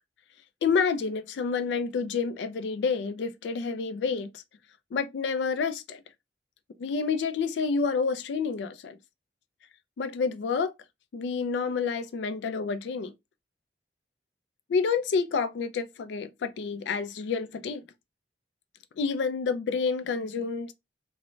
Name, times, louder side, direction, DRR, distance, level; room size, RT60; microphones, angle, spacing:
voice 1, 0.6-4.4 4.9-6.0 6.8-9.0 10.0-10.7 11.1-13.1 14.7-17.8 19.0-20.7, left 5 dB, 80° left, 0.3 m, -29 dB
3.0 x 2.1 x 2.5 m
head